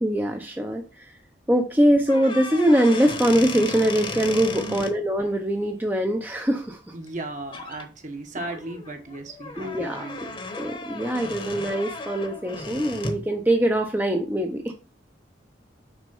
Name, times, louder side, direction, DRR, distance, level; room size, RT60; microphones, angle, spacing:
voice 1, 0.0-1.1 1.5-6.8 9.6-10.0 10.6-14.7, right 1 dB, 10° right, 2 dB, 0.7 m, -23 dB
sound 1, 2.0-4.9 7.1-7.2 7.5-7.8 8.3-13.3, left 3 dB, 30° left, 1.1 m, -35 dB
voice 2, 4.5-4.8 6.9-10.4, right 2 dB, 45° right, 5 dB, 1.2 m, -36 dB
6.2 x 4.4 x 5.4 m, 0.33 s
head